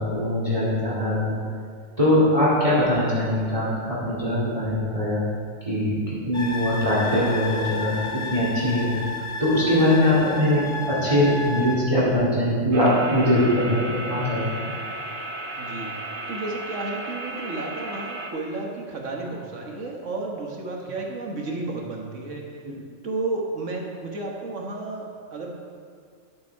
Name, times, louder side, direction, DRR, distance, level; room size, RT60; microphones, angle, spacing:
voice 1, 0.0-1.3 2.0-5.2 5.7-9.0 9.4-14.5, left 1 dB, 25° right, -7 dB, 2.3 m, -22 dB
sound 1, 6.3-11.8, left 3 dB, 25° left, 1.3 m, -32 dB
sound 2, 12.7-18.3, right 1 dB, 45° right, 1.0 m, -34 dB
voice 2, 15.6-22.4 23.0-25.5, right 2 dB, 70° right, 0 dB, 1.7 m, -32 dB
11.5 x 7.1 x 4.7 m, 2.1 s
omnidirectional pair, 1.3 m